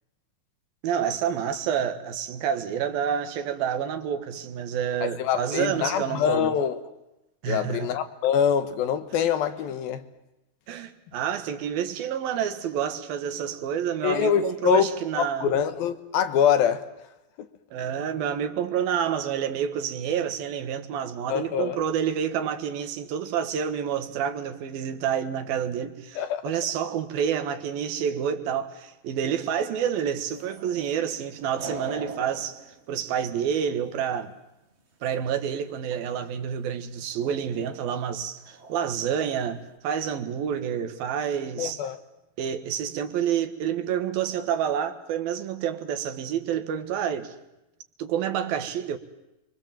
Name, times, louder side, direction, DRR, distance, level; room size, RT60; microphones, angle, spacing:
voice 1, 0.8-6.5 7.4-7.9 10.7-15.5 17.7-26.2 26.4-32.6 32.9-34.4 35.0-41.8 42.4-47.4 48.0-49.0, right 8 dB, 80° right, 3.4 m, -28 dB
voice 2, 5.0-6.8 7.4-10.0 14.0-14.9 15.1-16.9 17.4-17.5 21.3-21.8 26.2-26.6 41.6-42.0, left 8 dB, 80° left, 3.2 m, -24 dB
sound 1, 30.3-33.8 35.5-35.6 35.8-36.3 37.2-37.5 38.0-38.1 38.4-39.0 39.2-39.8, right 3 dB, 25° right, 1.8 m, -42 dB
30.0 x 24.0 x 7.5 m
omnidirectional pair, 4.2 m